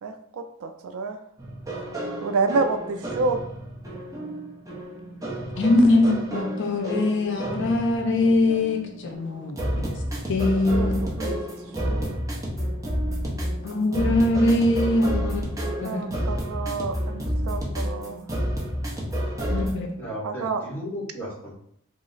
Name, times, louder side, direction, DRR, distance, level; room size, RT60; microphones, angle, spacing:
voice 1, 0.0-1.2 2.2-3.4 10.7-11.4 11.8-12.1 15.8-18.2 20.2-20.6, right 4 dB, 70° right, 7 dB, 0.3 m, -28 dB
sound 1, 1.4-19.7, equal, 15° right, 0.6 m, -30 dB
voice 2, 5.6-9.8 10.3-10.9 13.6-15.4 15.8-16.1 19.5-19.9, left 2 dB, 55° left, 2 dB, 0.5 m, -22 dB
voice 3, 20.0-21.5, equal, 10° left, -8 dB, 1.3 m, -34 dB
3.1 x 2.0 x 3.8 m, 0.68 s
head